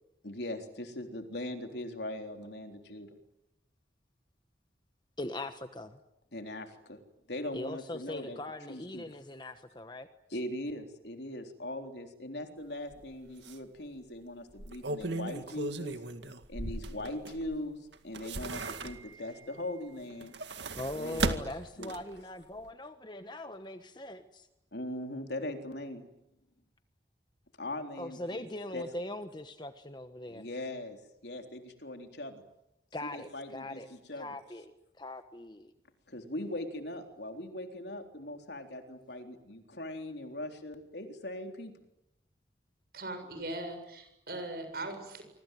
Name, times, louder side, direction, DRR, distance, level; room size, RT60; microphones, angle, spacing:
voice 1, 0.2-3.1 6.3-7.0 7.3-8.4 8.7-9.0 10.3-16.0 16.5-17.8 18.0-20.3 20.9-21.4 21.8-21.9 24.7-26.1 27.6-28.4 28.7-28.8 30.3-31.0 31.2-32.4 33.0-34.3 36.1-41.7, left 1 dB, 70° left, 5 dB, 3.7 m, -40 dB
voice 2, 5.2-6.0 7.5-10.1 19.3-19.4 20.7-24.5 28.0-30.5 32.9-35.7, left 1 dB, 25° left, 9 dB, 1.3 m, -41 dB
sound 1, 12.9-13.0 13.4-13.6 14.5-17.6 17.9-19.3 20.1-22.2 22.6-22.7, right 2 dB, 75° right, 2.1 m, -36 dB
voice 3, 42.9-45.2, right 2 dB, 55° right, 7 dB, 7.6 m, -39 dB
26.0 x 24.0 x 9.3 m, 0.86 s
head